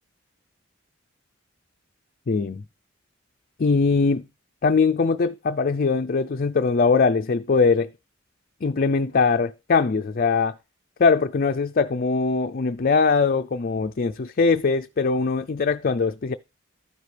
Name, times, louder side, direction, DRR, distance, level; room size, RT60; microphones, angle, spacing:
voice 1, 2.3-2.6 3.6-4.3 4.6-7.9 8.6-10.5 11.0-16.3, left 4 dB, 45° left, 0.5 m, -21 dB
12.5 x 9.4 x 3.3 m
head